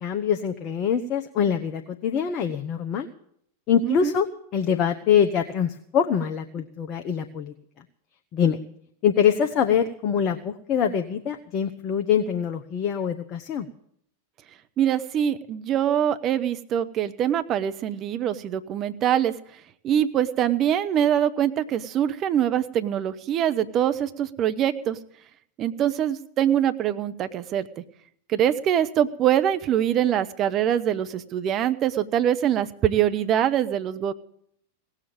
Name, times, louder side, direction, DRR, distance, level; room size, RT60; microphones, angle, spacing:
voice 1, 0.0-3.1 3.7-4.3 4.5-7.5 8.3-8.6 9.0-13.7, left 8 dB, 35° left, 5 dB, 1.0 m, -24 dB
voice 2, 3.8-4.1 14.8-19.3 19.8-25.0 25.6-27.8 28.3-34.1, right 10 dB, 35° right, 11 dB, 0.9 m, -24 dB
17.5 x 7.5 x 8.9 m, 0.68 s
figure-of-eight pair, 90°, 0 cm